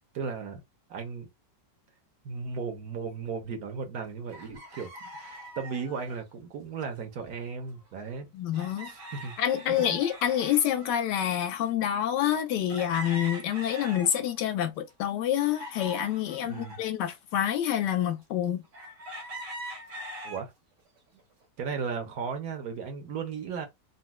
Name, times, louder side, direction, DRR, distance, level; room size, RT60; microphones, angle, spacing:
voice 1, 0.1-0.6 0.9-1.3 2.2-8.3 8.9-9.4 9.7-10.0 16.4-16.8 20.2-20.5 21.6-23.7, right 5 dB, 65° right, 1.1 m, -36 dB
sound 1, 4.3-6.2 7.4-7.5 7.8-7.9 8.5-11.3 11.9-12.0 12.7-14.4 14.9-16.8 17.5-17.6 18.7-20.5 21.0-21.4, equal, 85° right, 1.8 m, -42 dB
voice 2, 8.3-8.9 9.4-18.6, left 10 dB, 80° left, 1.2 m, -27 dB
4.0 x 2.1 x 2.2 m
omnidirectional pair, 1.9 m